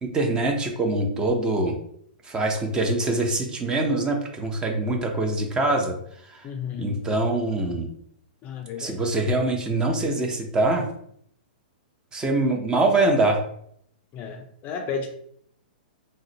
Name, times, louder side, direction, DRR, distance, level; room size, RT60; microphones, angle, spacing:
voice 1, 0.0-1.8 2.2-6.0 6.2-6.5 6.8-7.9 8.8-10.9 12.1-13.4, right 2 dB, 15° right, 2 dB, 0.6 m, -24 dB
voice 2, 6.4-7.0 8.4-9.0 14.1-15.1, left 5 dB, 30° left, 4 dB, 0.4 m, -33 dB
3.7 x 2.1 x 2.7 m, 0.68 s
hypercardioid pair, 130°, 5 cm